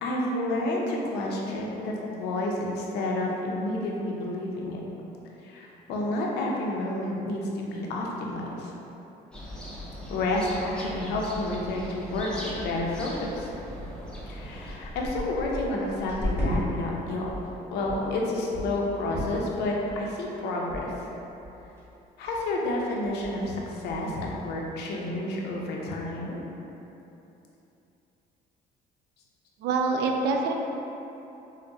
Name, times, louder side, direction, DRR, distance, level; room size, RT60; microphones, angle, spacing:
voice 1, 0.0-4.8 5.4-8.7 10.1-13.5 14.3-17.3 17.7-20.9 22.2-26.4, left 1 dB, 80° left, -2 dB, 0.6 m, -30 dB
sound 1, 9.3-14.8, equal, 5° left, 0.5 m, -39 dB
sound 2, 13.9-14.0 14.3-16.6 17.0-17.5 17.8-18.1 18.5-18.8 19.1-19.5 19.9-20.2 20.7-20.8 21.1-21.2 21.4-21.8 22.2-22.4 22.7-22.8 23.0-23.4 23.9-24.0, left 1 dB, 15° right, 1.3 m, -35 dB
voice 2, 29.6-30.5, right 4 dB, 80° right, 2 dB, 0.4 m, -25 dB
4.7 x 2.1 x 2.6 m, 3.0 s
cardioid pair, 110°, 17 cm